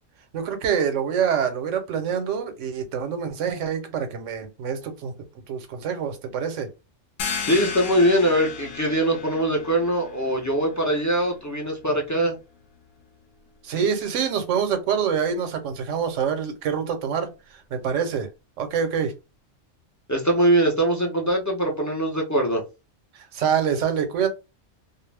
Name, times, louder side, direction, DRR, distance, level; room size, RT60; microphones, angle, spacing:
voice 1, 0.3-5.1 5.5-6.7 13.6-18.3 18.6-19.1 23.1-24.3, right 7 dB, 80° right, 1.0 m, -26 dB
sound 1, 7.2-12.6, left 6 dB, 85° left, 1.0 m, -36 dB
voice 2, 7.4-12.4 20.1-22.6, right 1 dB, 25° left, 0.4 m, -22 dB
2.5 x 2.0 x 3.2 m
omnidirectional pair, 1.3 m